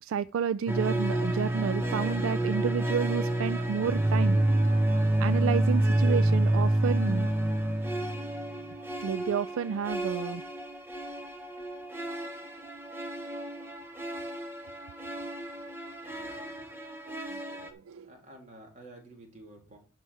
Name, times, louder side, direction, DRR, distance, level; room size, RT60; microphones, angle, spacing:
voice 1, 0.0-4.4 5.2-7.3 9.0-10.4 17.3-18.1, right 7 dB, 75° right, 0.3 m, -31 dB
sound 1, 0.7-17.7, right 1 dB, 10° right, 0.8 m, -29 dB
voice 2, 16.1-16.7 17.0-17.1 17.6-17.7 18.0-19.8, right 1 dB, 35° right, 2.6 m, -51 dB
11.5 x 4.7 x 4.7 m
head